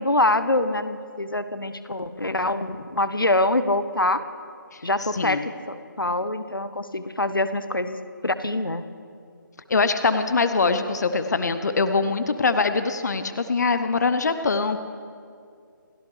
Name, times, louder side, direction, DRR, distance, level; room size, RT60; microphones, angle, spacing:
voice 1, 0.0-4.2 4.8-8.9, left 2 dB, 85° left, 12 dB, 1.0 m, -25 dB
voice 2, 9.7-14.8, left 4 dB, 55° left, 10 dB, 0.9 m, -23 dB
28.5 x 14.5 x 3.3 m, 2.3 s
figure-of-eight pair, 155°, 11 cm